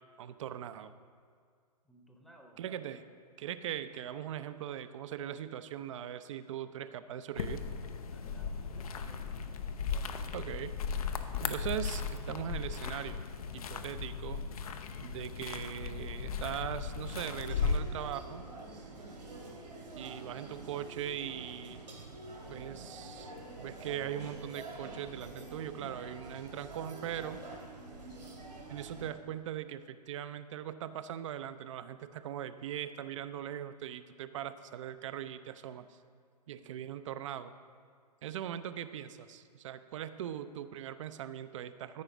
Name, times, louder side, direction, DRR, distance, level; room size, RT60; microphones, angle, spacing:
voice 1, 0.2-0.9 2.6-3.0 3.4-7.6 10.3-10.7 11.4-13.2 13.5-14.4 15.0-18.5 19.9-21.8 22.5-27.4 28.7-36.0 36.5-37.5 38.2-42.0, right 10 dB, 50° right, 13 dB, 0.4 m, -40 dB
voice 2, 1.8-2.9 8.1-9.4 9.9-10.5 18.7-19.2 36.5-36.8, right 1 dB, ahead, 1 dB, 0.8 m, -59 dB
sound 1, 7.4-17.8, left 5 dB, 60° left, 0.6 m, -36 dB
sound 2, 17.1-29.1, right 2 dB, 85° right, 2.3 m, -47 dB
13.5 x 4.9 x 4.9 m, 2.1 s
figure-of-eight pair, 115°, 21 cm